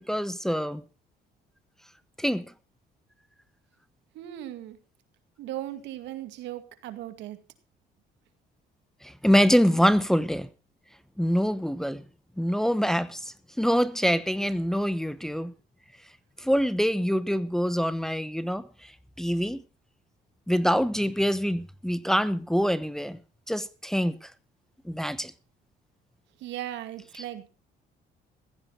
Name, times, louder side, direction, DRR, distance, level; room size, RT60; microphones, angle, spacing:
voice 1, 0.1-0.8 2.2-2.5 9.0-10.5 11.2-12.0 12.4-15.5 16.4-18.6 19.2-19.6 20.5-23.2 23.5-24.3 24.8-25.3, equal, ahead, 0.9 m, -25 dB
voice 2, 4.1-4.8 5.4-7.4 26.4-27.5, right 13 dB, 85° right, 2.2 m, -37 dB
15.5 x 15.0 x 4.0 m
cardioid pair, 115°, 18 cm